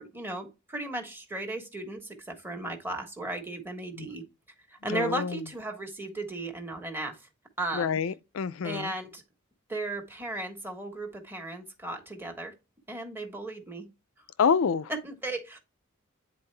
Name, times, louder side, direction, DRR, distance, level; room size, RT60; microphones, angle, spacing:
voice 1, 0.0-4.2 4.7-7.2 7.6-8.0 8.6-9.2 9.7-12.5 12.9-13.8 14.9-15.6, right 2 dB, 10° right, 1.3 m, -35 dB
voice 2, 4.9-5.4 7.7-8.9 14.4-14.9, left 6 dB, 75° left, 0.4 m, -27 dB
9.6 x 4.1 x 3.3 m
head